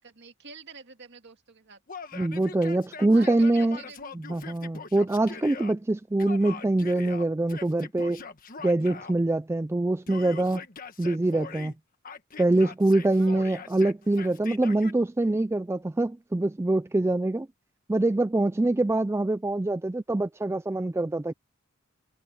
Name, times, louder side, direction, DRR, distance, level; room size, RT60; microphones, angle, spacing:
voice 1, 0.0-1.8 3.0-4.1 13.1-13.6, right 4 dB, 55° right, 2.2 m, -48 dB
Yell, 1.9-5.7 6.2-9.2 10.1-11.7 12.0-14.9, left 5 dB, 40° left, 1.4 m, -42 dB
voice 2, 2.1-3.8 4.3-8.2 8.6-10.6 11.0-11.7 12.4-17.5 17.9-21.3, right 2 dB, 15° right, 0.3 m, -24 dB
head